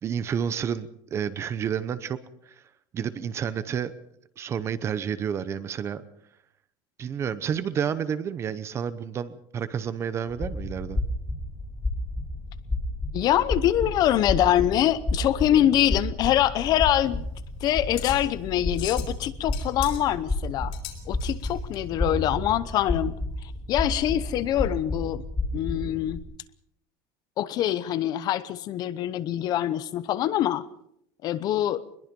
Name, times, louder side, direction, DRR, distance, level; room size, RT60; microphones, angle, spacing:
voice 1, 0.0-2.2 2.5-2.6 2.9-3.9 4.4-6.0 7.0-11.0, right 8 dB, 25° right, 14 dB, 0.8 m, -30 dB
sound 1, 10.3-26.2, left 2 dB, 10° left, 2.6 m, -31 dB
voice 2, 13.1-17.2 17.6-20.7 21.1-23.2 23.7-25.2 25.5-26.2 27.4-30.6 31.2-31.8, left 12 dB, 35° left, 15 dB, 0.8 m, -24 dB
sound 2, 16.6-21.8, left 12 dB, 60° left, 4.3 m, -42 dB
22.5 x 21.5 x 5.3 m, 0.72 s
cardioid pair, 175°, 11 cm